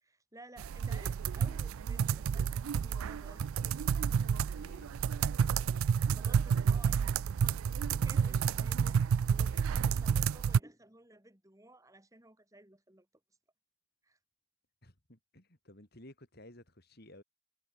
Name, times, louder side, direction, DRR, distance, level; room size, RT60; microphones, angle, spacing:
voice 1, 0.0-4.0 6.1-7.0 7.9-13.1 14.0-14.2, right 1 dB, 15° right, 2.5 m, -56 dB
sound 1, 0.6-10.6, right 7 dB, 80° right, 0.4 m, -30 dB
voice 2, 4.6-5.0 14.8-17.2, left 1 dB, 50° left, 4.3 m, -55 dB
head